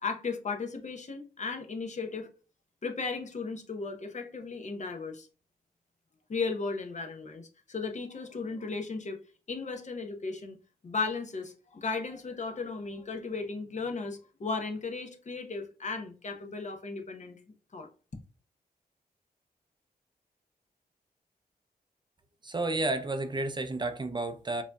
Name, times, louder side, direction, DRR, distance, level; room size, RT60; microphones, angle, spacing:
voice 1, 0.0-2.3 2.8-5.3 6.3-9.2 9.5-10.6 10.8-17.4 17.7-17.9, left 4 dB, 50° left, 0.8 m, -35 dB
voice 2, 22.4-24.6, right 2 dB, 30° right, 0.5 m, -31 dB
4.9 x 2.7 x 2.2 m
cardioid pair, 75°, 16 cm